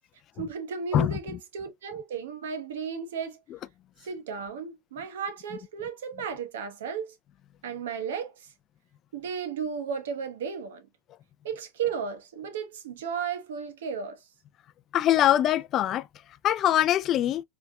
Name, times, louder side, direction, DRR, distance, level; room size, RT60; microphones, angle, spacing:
voice 1, 0.4-3.4 4.0-7.1 7.6-8.5 9.1-10.9 11.4-14.2, right 6 dB, 85° right, 1.1 m, -34 dB
voice 2, 14.9-16.1 16.4-17.4, left 12 dB, 40° left, 0.3 m, -22 dB
4.1 x 3.4 x 2.3 m
supercardioid pair, 115°, 0 cm